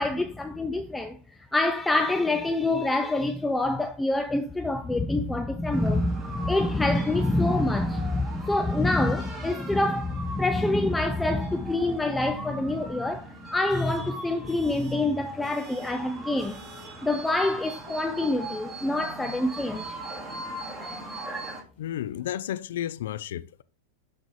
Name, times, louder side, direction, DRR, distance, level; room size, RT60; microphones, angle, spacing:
voice 1, 0.0-16.6 17.0-20.0 20.5-20.6 20.8-21.0, left 2 dB, 5° left, 0.5 m, -26 dB
sound 1, 5.7-21.6, right 2 dB, 10° right, 2.8 m, -40 dB
voice 2, 21.8-23.6, left 11 dB, 80° left, 0.4 m, -32 dB
12.0 x 4.0 x 3.2 m
supercardioid pair, 145°, 0 cm